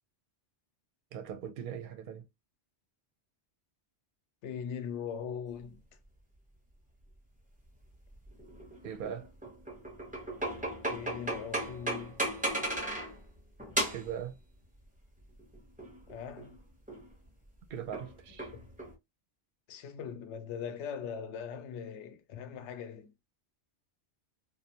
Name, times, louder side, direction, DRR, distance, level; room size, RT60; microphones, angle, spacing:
voice 1, 1.1-2.3 8.8-9.3 13.9-14.4 17.7-18.5, right 8 dB, 60° right, 0.6 m, -40 dB
voice 2, 4.4-5.8 10.9-12.3 16.1-16.6 18.3-18.7 19.7-23.1, left 7 dB, 85° left, 0.9 m, -41 dB
sound 1, 8.1-13.2 13.6-14.2 15.4-16.6 16.9-17.1 17.9-18.9, right 1 dB, 10° right, 0.5 m, -36 dB
2.5 x 2.0 x 2.7 m
omnidirectional pair, 1.1 m